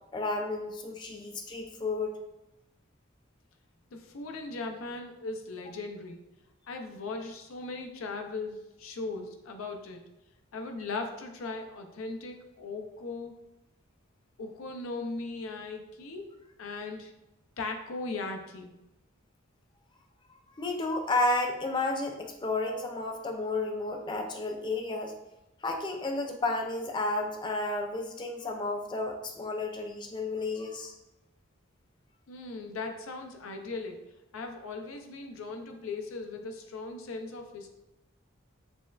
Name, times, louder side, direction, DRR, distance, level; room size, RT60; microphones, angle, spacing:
voice 1, 0.1-2.1 20.6-25.1 25.6-30.9, left 2 dB, 20° left, 3 dB, 0.3 m, -32 dB
voice 2, 3.9-6.2 6.7-10.0 10.5-13.3 14.4-16.3 16.6-17.1 17.6-18.7 32.3-34.0 34.3-37.7, left 3 dB, 85° left, 5 dB, 0.5 m, -38 dB
6.0 x 2.1 x 2.3 m, 0.94 s
head